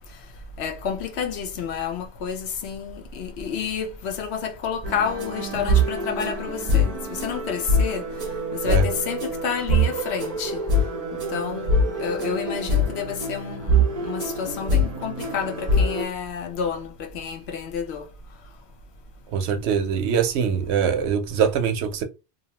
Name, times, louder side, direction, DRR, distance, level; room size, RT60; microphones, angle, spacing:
voice 1, 0.6-8.0 8.6-10.6 11.1-18.1, left 7 dB, 70° left, 0.9 m, -30 dB
sound 1, 4.8-16.0, equal, 40° right, 0.6 m, -24 dB
voice 2, 19.3-22.0, right 7 dB, 75° right, 0.8 m, -23 dB
2.7 x 2.1 x 2.8 m
omnidirectional pair, 1.2 m